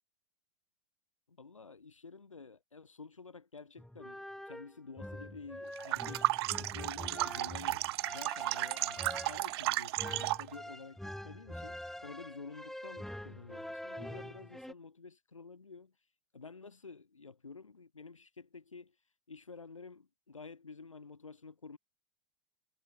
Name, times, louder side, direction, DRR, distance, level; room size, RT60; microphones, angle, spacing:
voice 1, 1.3-15.9 16.3-18.9 19.3-21.8, left 4 dB, 85° left, 3.0 m, -50 dB
sound 1, 3.8-14.7, left 1 dB, ahead, 2.1 m, -45 dB
sound 2, 5.8-10.5, right 18 dB, 55° right, 0.4 m, -34 dB
figure-of-eight pair, 95°, 16 cm